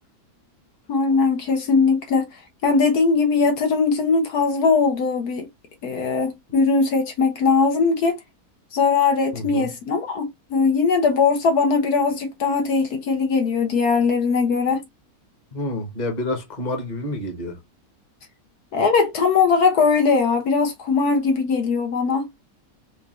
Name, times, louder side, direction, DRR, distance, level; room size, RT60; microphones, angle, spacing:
voice 1, 0.9-2.2 2.6-5.5 5.8-8.1 8.7-14.8 18.7-22.3, left 4 dB, 75° left, 1.6 m, -20 dB
voice 2, 9.3-9.7 15.5-17.6, left 1 dB, 30° left, 1.2 m, -28 dB
4.3 x 2.6 x 3.1 m
omnidirectional pair, 1.6 m